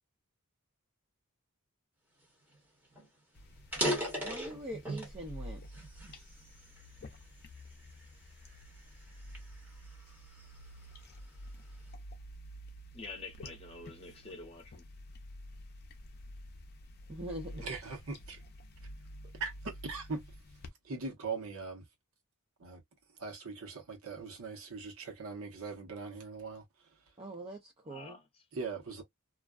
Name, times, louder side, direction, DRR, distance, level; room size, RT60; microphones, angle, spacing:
sound 1, 2.5-2.6 2.9-3.1 3.6-5.2 5.7-7.0 7.6-7.9 8.5-10.5, equal, 10° right, 1.1 m, -36 dB
sound 2, 3.3-20.7, equal, 45° left, 0.6 m, -50 dB
voice 1, 4.2-5.6 17.1-17.6 27.2-28.2, right 1 dB, 25° right, 0.6 m, -43 dB
voice 2, 12.9-14.9 27.8-28.4, left 3 dB, 25° left, 0.9 m, -47 dB
voice 3, 17.5-18.4 19.4-20.2 20.8-21.8 22.6-22.8 23.2-26.6 28.5-29.0, right 4 dB, 70° right, 1.0 m, -40 dB
2.4 x 2.2 x 2.3 m
head